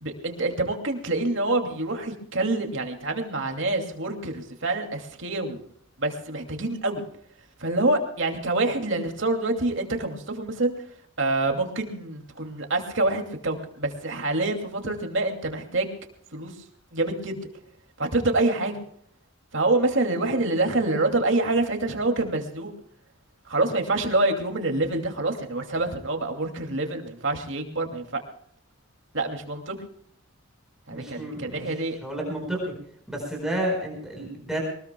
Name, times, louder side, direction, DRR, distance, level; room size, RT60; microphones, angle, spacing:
voice 1, 0.0-5.6 6.0-7.0 7.6-10.7 11.2-15.9 16.3-16.5 16.9-17.4 18.0-18.7 19.5-22.7 23.5-28.2 29.1-29.7 30.9-32.0, right 2 dB, 65° right, 4 dB, 2.6 m, -26 dB
voice 2, 30.9-31.7 32.0-32.7 33.1-34.6, right 1 dB, ahead, -2 dB, 4.8 m, -30 dB
23.5 x 20.0 x 2.3 m, 0.64 s
head